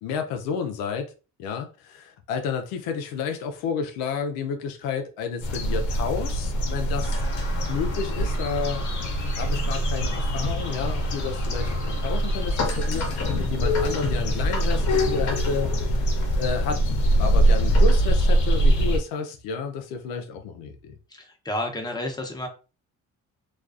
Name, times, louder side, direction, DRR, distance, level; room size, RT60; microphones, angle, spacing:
voice 1, 0.0-1.1 1.4-7.1 7.7-8.9 9.4-13.1 13.4-15.7 16.4-16.8 17.2-20.9, left 6 dB, 85° left, 0.5 m, -31 dB
sound 1, 5.4-19.0, equal, 60° left, 0.8 m, -23 dB
Truck, 7.0-12.8, left 2 dB, 40° left, 1.0 m, -42 dB
voice 2, 21.1-22.5, left 1 dB, 10° left, 0.7 m, -31 dB
2.4 x 2.3 x 2.4 m
supercardioid pair, 65°, 34 cm